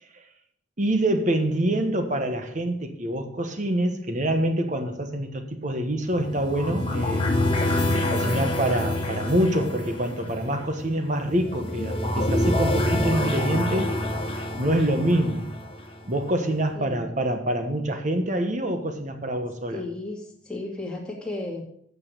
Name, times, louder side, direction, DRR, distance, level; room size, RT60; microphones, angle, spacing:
voice 1, 0.8-7.2 8.1-13.9 14.6-15.5 16.1-19.8, right 1 dB, 40° right, 6 dB, 1.3 m, -26 dB
sound 1, 6.1-16.2, left 1 dB, 30° left, 1.6 m, -27 dB
voice 2, 16.7-17.1 19.7-21.6, left 2 dB, 5° left, -3 dB, 2.4 m, -34 dB
8.6 x 6.7 x 6.6 m, 0.68 s
head